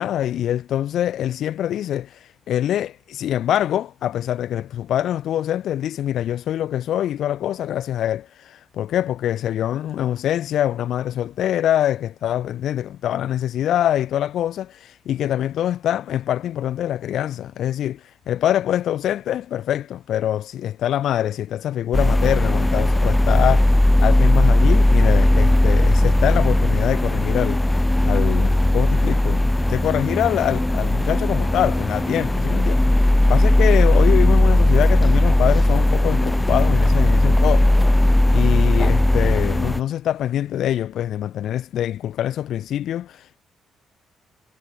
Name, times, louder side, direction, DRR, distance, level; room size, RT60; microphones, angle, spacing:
voice 1, 0.0-27.6 28.0-29.4 29.7-37.9 38.3-43.4, left 11 dB, 75° left, 7.8 m, -24 dB
sound 1, 21.9-39.8, left 1 dB, 10° left, 3.4 m, -17 dB
cardioid pair, 90°, 0 cm